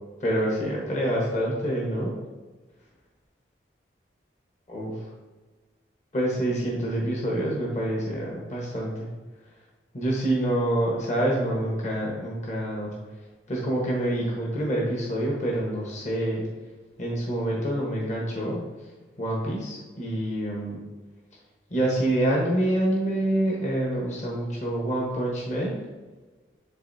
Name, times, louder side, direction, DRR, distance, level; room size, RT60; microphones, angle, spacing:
voice 1, 0.2-2.1 4.7-4.9 6.1-9.1 9.9-12.9 13.5-16.4 17.0-18.6 19.2-20.8 21.7-25.8, right 1 dB, 40° left, -3 dB, 1.1 m, -26 dB
10.5 x 3.8 x 2.7 m, 1.3 s
head